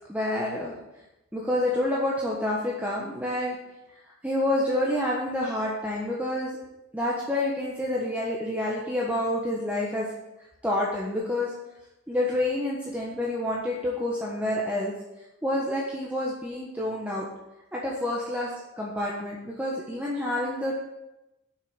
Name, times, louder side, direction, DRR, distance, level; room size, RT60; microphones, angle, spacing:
voice 1, 0.1-0.8 1.3-3.6 4.2-6.6 6.9-10.1 10.6-11.5 12.1-14.9 15.4-17.3 17.7-20.8, left 1 dB, 5° right, -4 dB, 1.3 m, -28 dB
7.8 x 6.4 x 8.1 m, 0.95 s
head